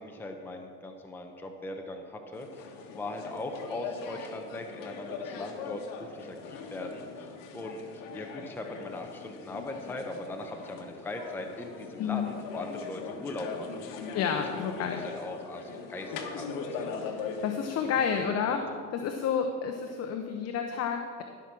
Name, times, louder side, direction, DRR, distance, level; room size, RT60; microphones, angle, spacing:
voice 1, 0.0-7.3 7.5-13.9 15.1-16.9 18.2-18.5, left 2 dB, 5° left, 3 dB, 0.8 m, -40 dB
sound 1, 2.3-18.3, left 5 dB, 60° left, 1.5 m, -41 dB
voice 2, 14.1-15.0 17.0-18.6 18.9-21.2, left 7 dB, 45° left, 5 dB, 0.9 m, -30 dB
13.5 x 6.0 x 6.2 m, 2.1 s
supercardioid pair, 125°, 37 cm